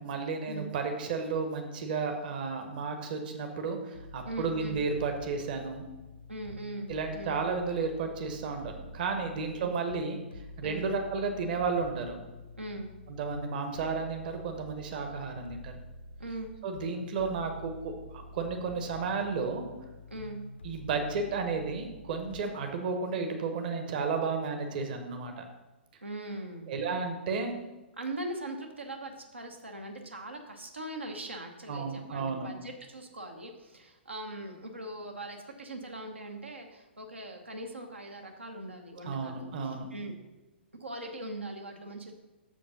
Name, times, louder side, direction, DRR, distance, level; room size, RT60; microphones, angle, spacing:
voice 1, 0.0-5.8 6.9-10.2 10.6-12.2 13.1-15.7 16.6-19.7 20.6-25.5 26.7-27.5 31.7-32.5 39.0-39.9, right 4 dB, 50° right, 4 dB, 1.1 m, -33 dB
sound 1, 3.9-22.4, left 2 dB, 75° left, 0.7 m, -48 dB
voice 2, 4.2-4.8 6.3-7.4 9.5-9.7 10.6-10.9 12.6-12.9 16.2-16.5 20.1-20.4 26.0-26.7 28.0-40.1 40.8-42.1, right 1 dB, 85° right, 3 dB, 0.9 m, -41 dB
6.8 x 5.1 x 5.4 m, 1.1 s
figure-of-eight pair, 115°, 6 cm